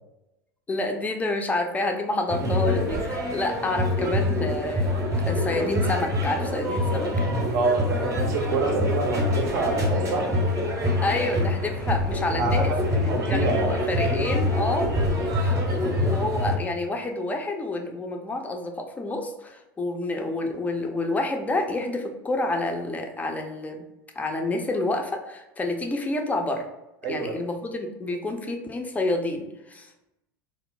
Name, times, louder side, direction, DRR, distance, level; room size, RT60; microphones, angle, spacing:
voice 1, 0.7-7.1 11.0-12.7 13.3-23.8 24.2-26.7 27.1-29.9, left 2 dB, 15° left, 4 dB, 0.5 m, -29 dB
sound 1, 2.3-16.6, left 1 dB, 30° right, 0.7 m, -25 dB
voice 2, 7.5-10.3 12.4-14.4 27.0-27.4, right 3 dB, 65° right, 3 dB, 0.6 m, -27 dB
2.4 x 2.0 x 3.8 m, 0.96 s
figure-of-eight pair, 80°, 11 cm